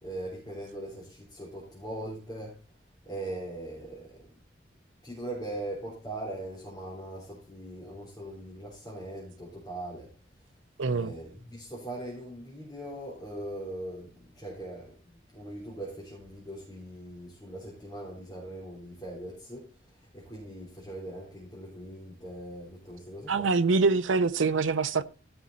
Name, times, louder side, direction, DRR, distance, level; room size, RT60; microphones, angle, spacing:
voice 1, 0.0-2.6 3.0-4.2 5.0-10.1 10.9-19.7 20.1-23.5, right 1 dB, 20° left, 3.6 m, -40 dB
voice 2, 10.8-11.1 23.3-25.0, right 4 dB, 85° right, 0.7 m, -25 dB
16.0 x 6.2 x 4.0 m
head